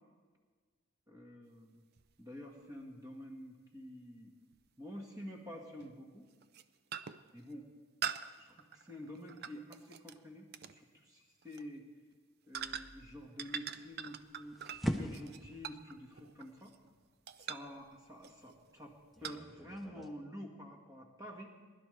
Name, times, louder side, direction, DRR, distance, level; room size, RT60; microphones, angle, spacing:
voice 1, 1.1-1.8 2.2-4.3 4.8-6.3 7.3-7.7 8.4-11.9 12.5-14.6 15.0-16.7 17.5-21.5, left 1 dB, 15° right, 0 dB, 1.7 m, -49 dB
sound 1, 2.0-2.1 4.5-4.6 5.8-6.0 6.4-6.6 6.9-7.3 8.0-10.2 10.5-10.8 11.4-11.6 12.5-13.1 13.4-16.9 17.3-17.8 18.2-18.5 19.2-19.4, right 8 dB, 50° right, 0.4 m, -43 dB
sound 2, 12.5-20.1, equal, ahead, 0.6 m, -44 dB
21.0 x 11.5 x 3.3 m, 1.5 s
head